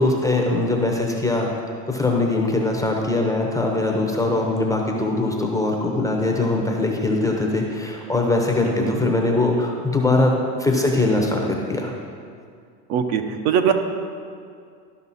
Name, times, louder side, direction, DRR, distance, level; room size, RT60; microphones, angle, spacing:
voice 1, 0.0-1.5 1.9-10.3 10.6-11.9, left 2 dB, 5° left, 0 dB, 0.7 m, -21 dB
voice 2, 8.6-9.0 12.9-13.7, right 8 dB, 60° right, 5 dB, 1.0 m, -21 dB
12.5 x 5.4 x 4.2 m, 2.2 s
supercardioid pair, 120°, 49 cm